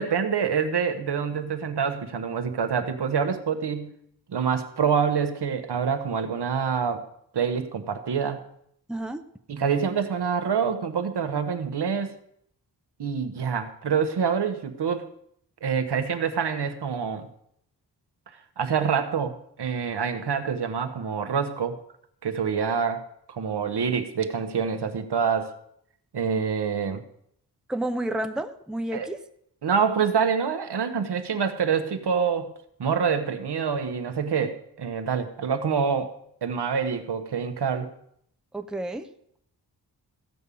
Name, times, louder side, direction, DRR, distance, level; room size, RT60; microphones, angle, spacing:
voice 1, 0.0-3.9 4.3-7.0 7.3-8.4 9.5-12.1 13.0-15.1 15.6-17.3 18.6-21.8 22.2-25.5 26.1-27.0 28.9-29.1 29.6-32.5 32.8-37.9, right 6 dB, 75° right, 7 dB, 1.3 m, -26 dB
voice 2, 8.9-9.2 27.7-29.2 38.5-39.1, right 1 dB, ahead, 7 dB, 0.7 m, -30 dB
15.5 x 5.5 x 8.4 m, 0.71 s
wide cardioid pair, 145°, 40 cm